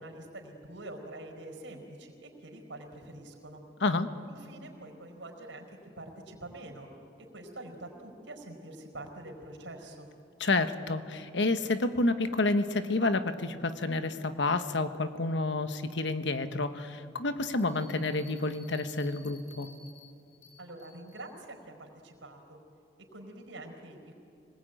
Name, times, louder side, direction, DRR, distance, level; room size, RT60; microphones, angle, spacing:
voice 1, 0.0-3.6 4.3-6.9 7.2-10.1 20.6-22.6 23.1-24.2, right 1 dB, 85° right, 2 dB, 4.8 m, -46 dB
voice 2, 10.4-19.7, left 2 dB, 70° left, 10 dB, 1.2 m, -29 dB
Bell, 17.6-21.3, left 3 dB, 35° left, 8.0 m, -56 dB
25.5 x 20.0 x 9.2 m, 2.5 s
head